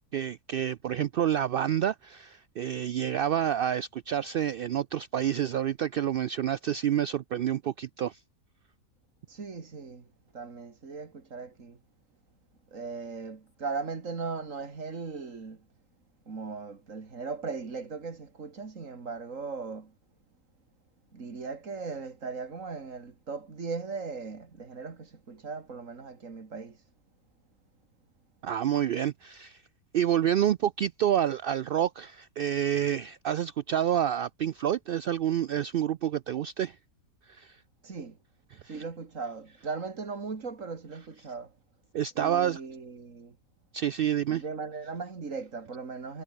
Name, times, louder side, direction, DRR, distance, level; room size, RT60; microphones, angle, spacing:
voice 1, 0.1-8.2 28.4-29.6 29.9-36.8 37.3-37.6 38.5-38.8 41.9-42.6 43.7-44.4, right 10 dB, 80° right, 0.5 m, -28 dB
voice 2, 9.3-10.1 10.3-11.8 12.7-15.7 16.3-20.0 21.1-26.8 37.8-38.2 38.5-41.6 42.2-43.4 44.3-46.2, right 4 dB, 65° right, 2.7 m, -38 dB
omnidirectional pair, 1.5 m